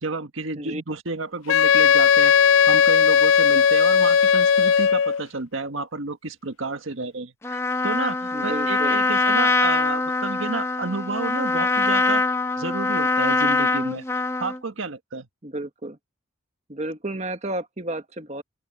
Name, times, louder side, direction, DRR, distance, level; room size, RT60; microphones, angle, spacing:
voice 1, 0.0-12.2 12.6-14.0 14.4-15.3, right 3 dB, 80° right, 1.6 m, -31 dB
Wind instrument woodwind instrument, 1.5-5.2, left 7 dB, 85° left, 0.4 m, -17 dB
Trumpet, 7.4-14.6, left 3 dB, 15° left, 0.8 m, -23 dB
voice 2, 8.3-9.0 15.4-16.0 16.7-18.4, right 1 dB, 35° right, 1.5 m, -32 dB
open air
head